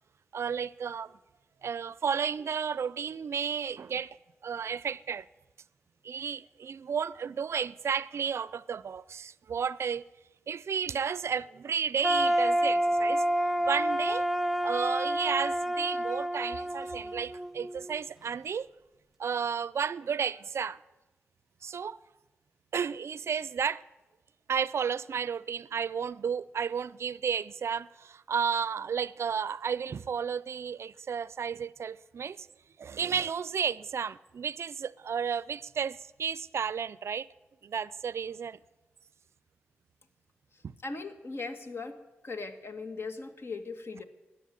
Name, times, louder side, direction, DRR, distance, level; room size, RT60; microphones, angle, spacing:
voice 1, 0.3-1.1 1.6-4.2 4.4-5.3 6.0-10.1 10.5-13.2 13.7-14.2 14.6-18.7 19.2-20.8 21.6-22.0 22.7-23.8 24.5-32.5 32.8-37.3 37.6-38.6 40.6-40.7, right 7 dB, 65° right, 0.5 m, -32 dB
sound 1, 12.0-17.9, equal, 5° right, 0.7 m, -28 dB
voice 2, 40.8-42.0 42.2-44.0, left 3 dB, 55° left, 1.8 m, -39 dB
14.5 x 10.0 x 9.3 m
supercardioid pair, 45°, 5 cm